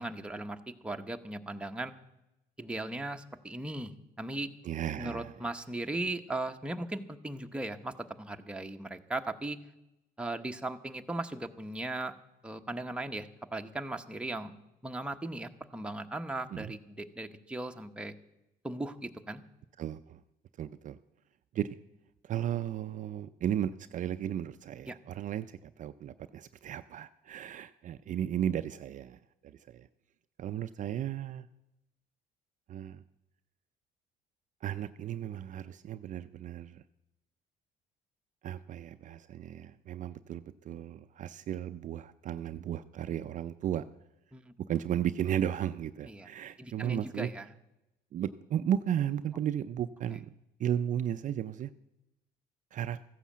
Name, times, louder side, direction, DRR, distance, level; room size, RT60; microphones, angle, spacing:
voice 1, 0.0-1.9 2.6-3.9 4.2-4.5 5.0-9.6 10.2-12.1 12.4-14.5 14.8-18.1 18.6-19.4 24.9-25.0 44.3-44.5 46.0-46.3 46.6-47.5, right 2 dB, 5° right, 5 dB, 0.9 m, -37 dB
voice 2, 4.6-5.3 16.5-16.7 19.8-20.2 20.6-21.0 21.5-21.8 22.2-29.9 30.4-31.5 32.7-33.0 34.6-36.8 38.4-43.8 44.7-47.3 48.1-50.3 50.6-51.7 52.7-53.0, right 10 dB, 50° right, 10 dB, 0.5 m, -34 dB
14.5 x 9.9 x 7.4 m, 0.91 s
cardioid pair, 110°, 17 cm